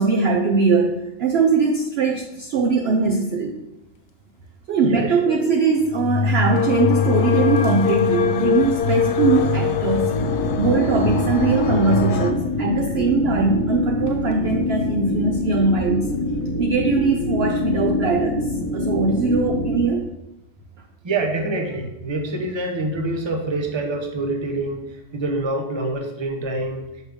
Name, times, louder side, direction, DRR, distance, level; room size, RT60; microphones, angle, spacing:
voice 1, 0.0-3.6 4.7-10.2 10.6-16.1 16.6-18.5 18.7-20.1, right 4 dB, 70° right, 3 dB, 0.6 m, -21 dB
sound 1, 2.1-2.4 3.2-3.3 3.6-3.7 5.0-5.1 5.8-8.0 8.5-8.6 9.4-9.5 9.9-10.2 10.8-11.0 12.3-13.1 14.1-14.3, left 6 dB, 70° left, 1.0 m, -25 dB
voice 2, 4.8-5.4 21.0-26.9, right 2 dB, 25° right, 3 dB, 0.6 m, -26 dB
sound 2, 6.5-12.3, left 5 dB, 85° left, 1.2 m, -22 dB
sound 3, 10.2-19.8, left 2 dB, 20° left, 1.1 m, -25 dB
6.4 x 5.1 x 3.5 m, 0.94 s
omnidirectional pair, 1.6 m